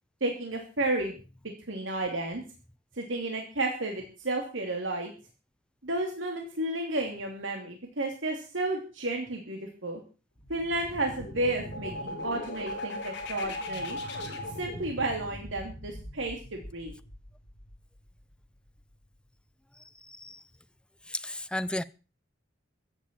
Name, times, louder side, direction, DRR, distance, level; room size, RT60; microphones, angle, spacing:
voice 1, 0.2-1.2 1.4-2.4 2.9-5.1 5.8-10.0 10.5-14.0 14.6-16.9, right 2 dB, 75° right, 2.9 m, -32 dB
sound 1, 10.4-18.0, left 1 dB, 60° left, 6.5 m, -39 dB
voice 2, 19.8-20.4 21.1-21.8, left 1 dB, 5° left, 0.6 m, -35 dB
14.5 x 7.3 x 8.8 m
head